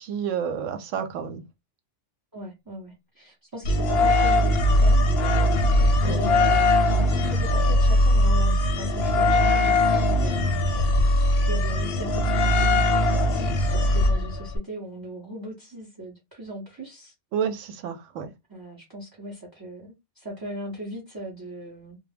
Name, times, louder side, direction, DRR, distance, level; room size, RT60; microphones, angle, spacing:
voice 1, 0.0-1.4 6.0-6.2 17.3-18.3, right 7 dB, 90° right, 0.9 m, -30 dB
voice 2, 2.3-5.1 5.8-6.7 7.0-10.6 11.5-17.1 18.5-22.0, right 1 dB, 25° right, 0.5 m, -38 dB
sound 1, 3.7-14.6, left 1 dB, 65° left, 0.7 m, -20 dB
2.2 x 2.0 x 3.2 m
omnidirectional pair, 1.3 m